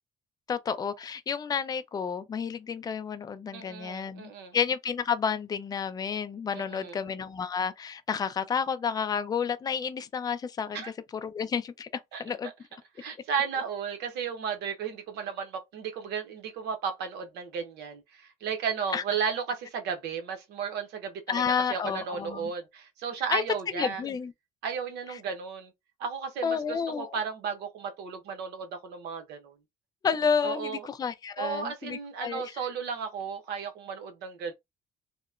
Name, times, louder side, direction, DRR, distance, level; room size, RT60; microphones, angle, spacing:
voice 1, 0.5-12.5 18.9-19.0 21.3-22.5 23.3-23.4 23.8-24.3 25.1-25.2 26.4-27.2 30.0-32.5, left 6 dB, 25° left, 0.3 m, -31 dB
voice 2, 3.5-4.6 6.5-7.0 10.7-10.9 12.1-12.5 13.0-21.4 21.7-24.0 24.6-25.7 26.0-29.5 30.4-30.8 31.4-34.5, right 6 dB, 80° right, 0.8 m, -34 dB
2.8 x 2.0 x 2.3 m
cardioid pair, 110°, 17 cm